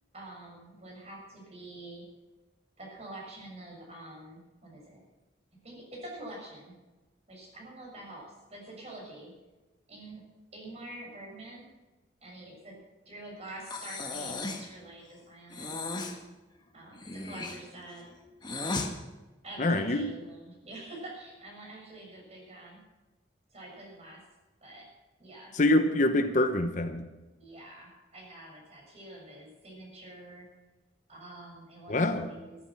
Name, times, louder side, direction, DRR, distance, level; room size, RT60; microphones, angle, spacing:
voice 1, 0.1-2.0 2.8-5.0 5.6-6.7 7.3-9.3 9.9-10.2 10.5-11.7 12.2-12.8 13.0-15.7 16.7-18.0 19.4-22.8 23.5-24.2 24.6-24.9 25.2-25.5 27.4-30.5 31.1-32.6, right 1 dB, 35° right, -1 dB, 6.8 m, -46 dB
Breathing, 13.7-14.7 15.5-16.2 16.9-18.9, left 3 dB, 25° left, 1.5 m, -36 dB
voice 2, 19.6-20.1 25.5-27.1 31.9-32.3, left 1 dB, 45° left, 8 dB, 1.0 m, -25 dB
14.0 x 13.5 x 5.9 m, 1.1 s
head